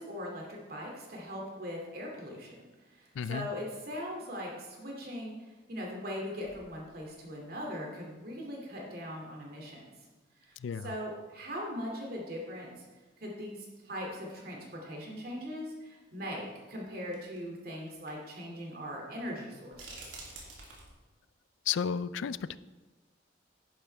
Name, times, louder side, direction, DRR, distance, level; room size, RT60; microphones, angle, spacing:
voice 1, 0.0-2.6 2.9-5.3 5.7-9.9 10.4-10.6 10.8-12.9 13.2-20.2, equal, 50° right, -1 dB, 2.5 m, -40 dB
voice 2, 3.1-3.5 10.6-10.9 21.6-22.6, left 7 dB, 80° left, 16 dB, 0.4 m, -33 dB
sound 1, 6.4-7.4 8.0-8.1 9.8-9.9 11.2-11.3 11.5-11.6 12.7-12.8 13.1-13.2 14.6-14.7 16.1-16.2 17.1-17.5 17.9-18.1 18.4-18.5 19.7-20.9, right 2 dB, 80° right, 2.7 m, -49 dB
11.0 x 10.0 x 3.4 m, 1.3 s
head